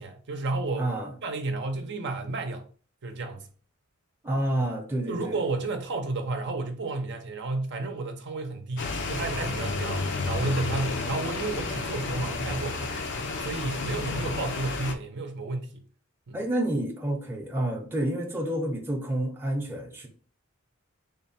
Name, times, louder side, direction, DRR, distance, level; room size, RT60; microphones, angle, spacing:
voice 1, 0.0-0.9 1.2-2.6 3.0-3.5 5.1-12.9 13.4-15.8 16.3-16.4, right 3 dB, 55° right, 0.6 m, -32 dB
voice 2, 0.8-1.1 4.2-5.4 16.3-20.1, right 1 dB, 10° right, 0.7 m, -29 dB
sound 1, 8.8-14.9, left 3 dB, 60° left, 0.6 m, -31 dB
3.6 x 2.2 x 4.1 m
head